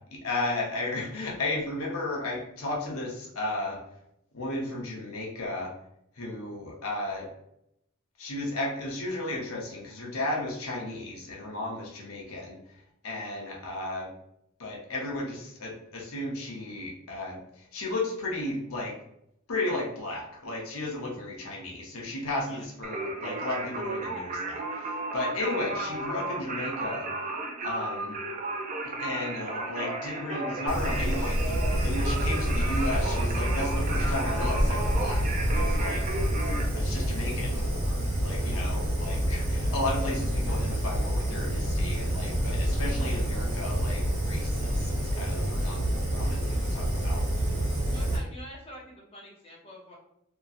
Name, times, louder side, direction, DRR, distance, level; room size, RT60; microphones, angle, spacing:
voice 1, 0.0-3.8 4.3-5.7 6.2-7.3 8.2-12.6 13.0-14.1 14.6-18.9 19.5-27.1 27.6-28.2 28.8-35.2 35.5-36.0 36.7-45.8 46.1-47.2, left 2 dB, 85° left, -2 dB, 0.8 m, -34 dB
Singing, 22.8-36.6, right 2 dB, 35° right, 0.3 m, -34 dB
Fire, 30.7-48.2, equal, 75° right, 1.3 m, -28 dB
voice 2, 47.8-49.9, equal, 25° left, -4 dB, 0.7 m, -46 dB
2.9 x 2.6 x 2.4 m, 0.77 s
head